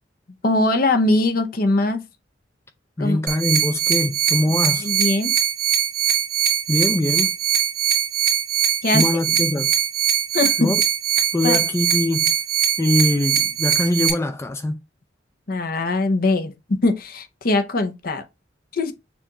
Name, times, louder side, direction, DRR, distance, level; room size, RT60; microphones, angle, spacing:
voice 1, 0.4-2.0 3.0-3.2 4.8-5.3 8.8-9.1 10.3-10.7 11.4-11.6 15.5-18.2 18.7-18.9, left 2 dB, 50° left, 0.7 m, -21 dB
voice 2, 3.0-4.9 6.7-7.3 8.9-9.7 10.6-10.8 11.3-12.3 12.8-14.8, left 1 dB, 15° left, 0.3 m, -22 dB
sound 1, 3.3-14.1, right 9 dB, 50° right, 1.4 m, -21 dB
6.9 x 2.4 x 2.9 m
head